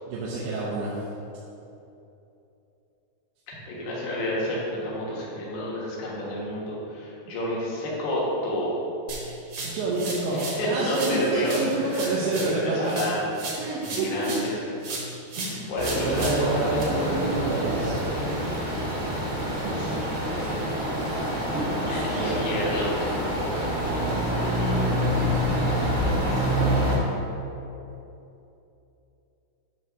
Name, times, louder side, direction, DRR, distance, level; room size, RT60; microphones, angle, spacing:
voice 1, 0.1-1.0 9.6-13.2 13.6-14.3 15.4-15.7 16.0-18.0 19.6-19.9 20.2-20.8 21.8-22.6, right 2 dB, 80° right, -6 dB, 2.9 m, -29 dB
voice 2, 3.5-8.7 10.6-13.3 13.8-14.6 15.7-17.7 21.9-23.0 24.2-24.9, left 1 dB, 80° left, -6 dB, 3.5 m, -30 dB
sound 1, 9.1-10.6 10.9-14.5 14.8-16.8, right 2 dB, 55° right, 1.8 m, -35 dB
sound 2, 15.8-26.9, equal, 40° right, 1.0 m, -26 dB
9.7 x 3.4 x 6.1 m, 2.9 s
omnidirectional pair, 4.5 m